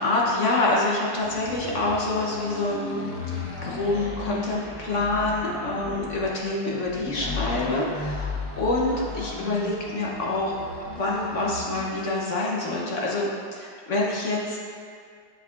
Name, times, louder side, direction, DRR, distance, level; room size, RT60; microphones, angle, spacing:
voice 1, 0.0-10.6 10.9-14.6, left 2 dB, 55° left, -3 dB, 0.9 m, -26 dB
sound 1, 1.2-12.0, left 2 dB, 15° left, 0.4 m, -36 dB
7.5 x 7.3 x 2.4 m, 2.2 s
omnidirectional pair, 2.0 m